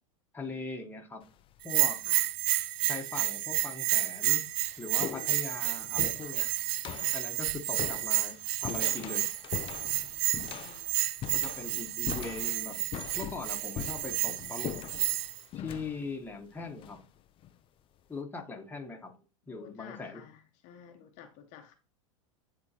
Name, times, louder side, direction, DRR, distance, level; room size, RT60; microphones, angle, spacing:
voice 1, 0.3-1.2 1.6-2.0 2.9-4.4 4.8-6.5 7.1-9.3 11.3-12.9 13.1-14.7 15.5-17.0 18.1-19.1 19.5-20.2, left 3 dB, 10° left, 1.5 m, -40 dB
sound 1, 1.2-1.7 2.6-2.7 3.5-3.6 4.0-17.6, left 10 dB, 30° left, 0.5 m, -42 dB
Bell, 1.6-15.4, right 16 dB, 55° right, 0.6 m, -31 dB
voice 2, 10.6-11.0 19.5-21.8, left 9 dB, 50° left, 1.0 m, -52 dB
9.3 x 3.8 x 2.9 m
hypercardioid pair, 105°, 17 cm